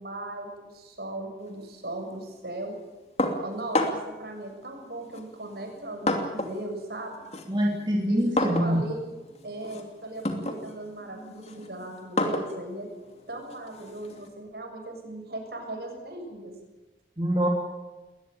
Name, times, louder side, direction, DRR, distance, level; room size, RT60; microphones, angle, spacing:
voice 1, 0.0-2.7 3.4-7.3 8.1-9.0 9.4-12.9 13.3-16.5, right 1 dB, 65° right, 4 dB, 6.9 m, -38 dB
sound 1, 3.2-4.2 5.1-6.7 7.0-14.3, left 1 dB, 35° left, 2.8 m, -31 dB
voice 2, 7.5-8.8 17.2-17.5, equal, 25° right, -1 dB, 3.1 m, -25 dB
21.0 x 19.5 x 9.0 m, 1.2 s
head